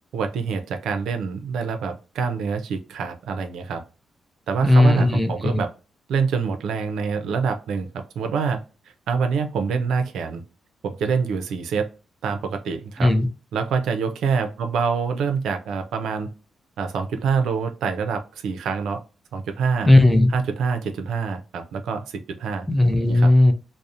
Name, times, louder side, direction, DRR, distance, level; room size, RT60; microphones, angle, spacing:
voice 1, 0.1-3.8 4.5-5.7 6.1-8.6 9.1-10.4 10.8-11.9 12.2-13.1 13.5-16.3 16.8-19.0 19.3-19.9 20.3-22.7 23.1-23.3, right 5 dB, 90° right, 7 dB, 0.4 m, -26 dB
voice 2, 4.6-5.6 13.0-13.3 19.9-20.3 22.7-23.5, left 1 dB, 5° left, 6 dB, 0.4 m, -16 dB
2.7 x 2.0 x 2.4 m, 0.33 s
cardioid pair, 105°, 0 cm